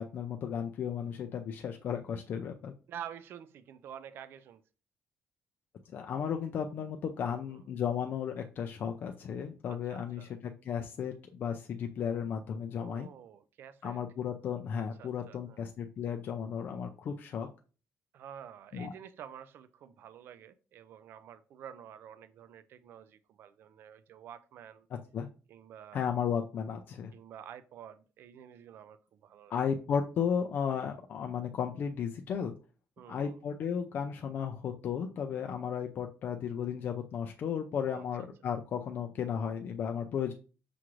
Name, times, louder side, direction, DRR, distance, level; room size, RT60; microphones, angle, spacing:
voice 1, 0.0-2.7 5.9-13.1 13.8-17.5 18.7-18.9 25.1-25.3 25.9-27.1 29.5-32.5 33.1-40.3, left 7 dB, 45° left, 0.4 m, -34 dB
voice 2, 2.9-4.6 7.3-7.6 9.7-10.3 12.8-14.0 15.0-15.6 18.1-24.9 25.5-26.0 27.1-29.6 33.0-33.4 37.9-38.1, right 9 dB, 50° right, 0.3 m, -49 dB
5.9 x 2.5 x 3.0 m
cardioid pair, 160°, 5 cm